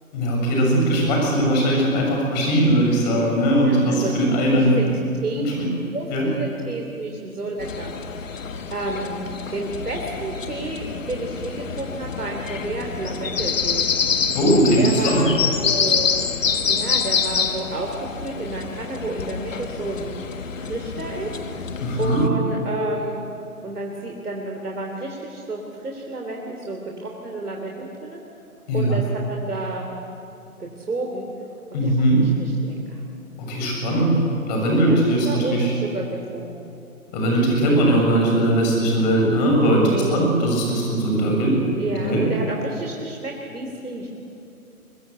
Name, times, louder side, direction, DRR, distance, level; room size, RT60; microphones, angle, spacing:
voice 1, 0.1-4.8 5.4-5.7 6.1-6.3 14.3-15.2 21.8-22.2 28.7-28.9 31.7-32.2 33.4-34.2 34.5-35.7 37.1-41.5 42.0-42.2, right 1 dB, 30° left, -1 dB, 7.1 m, -19 dB
voice 2, 3.6-4.1 4.5-4.9 5.2-5.5 5.9-7.9 8.7-9.2 9.5-13.8 14.8-15.3 15.6-16.1 16.7-20.2 20.6-21.3 22.0-23.3 23.6-28.2 28.7-29.9 30.6-31.3 31.7-33.0 33.7-34.1 34.8-36.7 37.1-37.4 39.8-40.3 41.8-44.1, right 2 dB, 80° right, 0 dB, 3.5 m, -31 dB
sound 1, 7.6-22.3, left 6 dB, 60° left, 1.6 m, -27 dB
24.0 x 20.0 x 8.2 m, 2.7 s
figure-of-eight pair, 145°, 45 cm